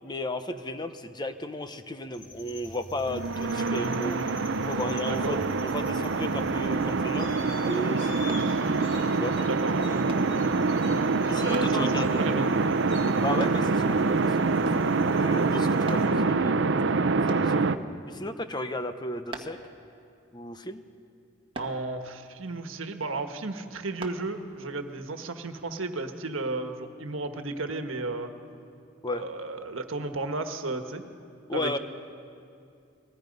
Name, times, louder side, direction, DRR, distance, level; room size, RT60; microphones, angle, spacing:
voice 1, 0.0-8.3 9.1-9.4 11.3-12.5 13.2-14.5 14.8-17.6 18.1-19.6 20.3-20.8 29.0-29.2 31.5-31.8, left 1 dB, 20° left, 9 dB, 0.8 m, -34 dB
sound 1, 2.1-16.1, left 2 dB, 65° left, 4.3 m, -46 dB
sound 2, 3.1-17.8, right 3 dB, 65° right, 0.7 m, -25 dB
voice 2, 5.1-5.5 8.6-8.8 9.5-9.8 11.4-12.4 21.5-28.3 29.1-31.0 31.5-31.8, right 3 dB, 85° right, 6 dB, 1.4 m, -33 dB
sound 3, 8.3-8.5 10.1-10.3 11.5-11.8 13.4-13.6 14.6-14.9 15.9-16.1 17.3-17.5 19.3-19.6 21.5-21.8 24.0-24.2 24.8-24.9, right 2 dB, 25° right, 1.4 m, -37 dB
30.0 x 20.0 x 5.4 m, 2.5 s
head